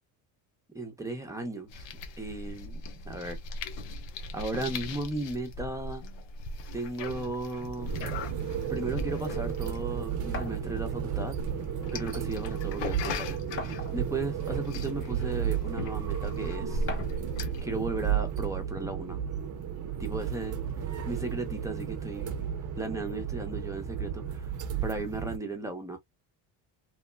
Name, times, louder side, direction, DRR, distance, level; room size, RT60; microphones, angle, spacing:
voice 1, 0.7-1.9 2.2-3.4 4.3-6.0 6.7-7.9 8.7-11.4 11.9-16.9 17.6-19.2 20.0-22.5 22.8-24.5 24.8-26.0, right 2 dB, 5° right, 0.8 m, -36 dB
sound 1, 1.7-17.6, left 3 dB, 85° left, 0.8 m, -39 dB
sound 2, 7.7-25.4, right 9 dB, 45° right, 0.6 m, -33 dB
sound 3, 10.3-10.6 11.8-11.9 12.3-12.4 13.6-14.2 15.1-15.2 16.9-17.3, left 4 dB, 30° left, 0.8 m, -38 dB
3.1 x 2.1 x 2.2 m
cardioid pair, 110°, 43 cm